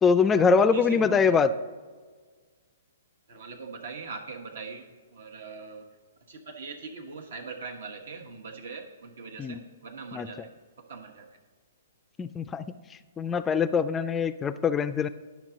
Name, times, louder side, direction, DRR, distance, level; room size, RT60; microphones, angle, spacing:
voice 1, 0.0-1.5 9.4-9.6 10.1-10.3 12.2-12.6 13.2-15.1, left 5 dB, 15° left, 12 dB, 0.3 m, -23 dB
voice 2, 0.7-1.4 3.3-5.9 6.3-10.5 10.8-11.4, right 4 dB, 70° right, 3 dB, 1.1 m, -41 dB
10.0 x 5.9 x 3.7 m, 1.5 s
hypercardioid pair, 125°, 0 cm